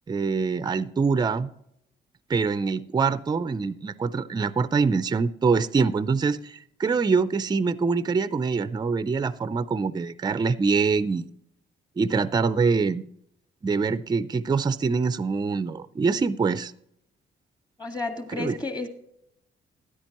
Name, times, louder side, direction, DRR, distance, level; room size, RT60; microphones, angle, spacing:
voice 1, 0.1-1.5 2.3-11.3 12.0-13.0 13.6-16.7 18.3-18.6, right 4 dB, 20° right, 0.4 m, -24 dB
voice 2, 17.8-18.9, left 3 dB, 20° left, 1.9 m, -31 dB
13.0 x 10.0 x 3.0 m
cardioid pair, 90°, 20 cm